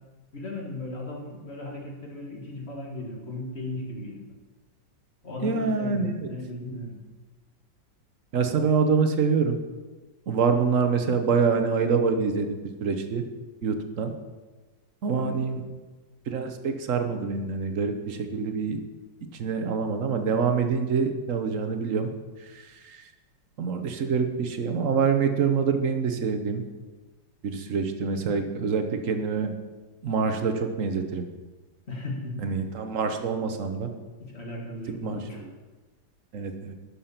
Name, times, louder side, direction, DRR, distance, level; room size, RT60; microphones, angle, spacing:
voice 1, 0.3-4.2 5.2-7.1 15.2-15.6 31.9-32.5 34.2-35.4, left 1 dB, 35° left, -1 dB, 1.9 m, -36 dB
voice 2, 5.4-6.3 8.3-9.6 10.3-13.2 13.6-14.1 15.0-15.6 16.3-18.8 19.3-22.1 22.4-23.1 23.6-26.6 27.4-29.5 30.0-31.3 32.4-33.9 35.0-35.5 36.3-36.7, right 5 dB, 50° right, 6 dB, 1.1 m, -26 dB
11.5 x 6.8 x 5.7 m, 1.3 s
omnidirectional pair, 2.1 m